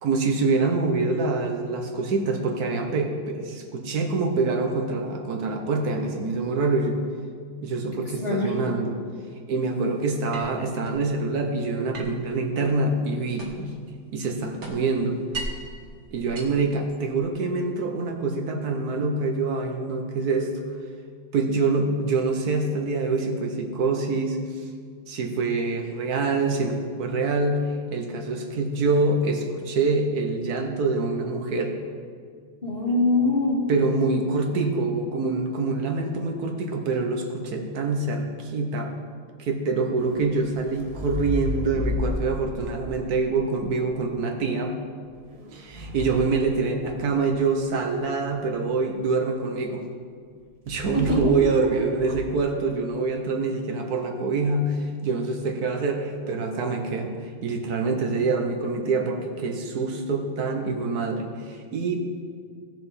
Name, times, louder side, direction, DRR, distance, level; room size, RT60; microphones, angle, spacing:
voice 1, 0.0-7.0 7.6-9.0 9.5-15.2 16.1-20.5 21.3-24.6 25.1-31.7 33.7-38.9 39.4-44.8 45.5-49.8 50.7-62.0, right 3 dB, 65° right, 3 dB, 1.4 m, -25 dB
voice 2, 8.2-8.5 32.6-33.6 50.9-51.3, left 2 dB, 35° left, -6 dB, 2.0 m, -23 dB
sound 1, 10.3-11.0 11.9-13.8 14.1-15.7 16.2-17.3, right 2 dB, 45° right, 1.4 m, -38 dB
sound 2, 40.0-44.1 45.0-47.4 50.7-51.6 51.9-52.4, left 2 dB, 30° right, 0.8 m, -33 dB
15.5 x 6.7 x 4.1 m, 2.1 s
omnidirectional pair, 1.8 m